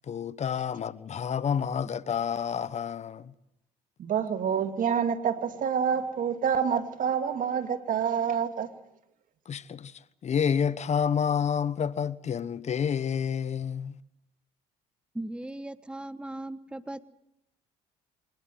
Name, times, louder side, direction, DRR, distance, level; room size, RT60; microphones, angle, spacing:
voice 1, 0.0-3.3 9.4-14.0, left 7 dB, 45° left, 1.0 m, -29 dB
voice 2, 4.0-8.7, right 7 dB, 55° right, 2.4 m, -27 dB
voice 3, 15.1-17.0, right 1 dB, 5° right, 1.2 m, -38 dB
26.0 x 20.0 x 7.9 m
hypercardioid pair, 65°, 17 cm